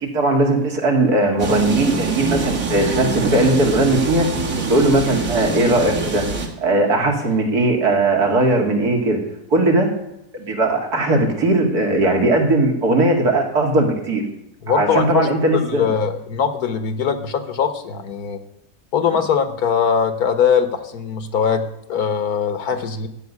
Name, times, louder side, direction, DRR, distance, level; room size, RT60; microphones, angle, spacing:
voice 1, 0.0-4.3 4.7-6.2 6.6-9.2 9.5-9.9 10.3-14.2 14.7-15.9, right 2 dB, 75° right, 1 dB, 2.9 m, -18 dB
sound 1, 1.4-6.5, right 4 dB, 55° right, 2.2 m, -24 dB
voice 2, 14.6-15.3 15.5-18.4 18.9-23.1, left 7 dB, 70° left, 10 dB, 1.6 m, -21 dB
15.5 x 5.6 x 9.6 m, 0.84 s
omnidirectional pair, 1.7 m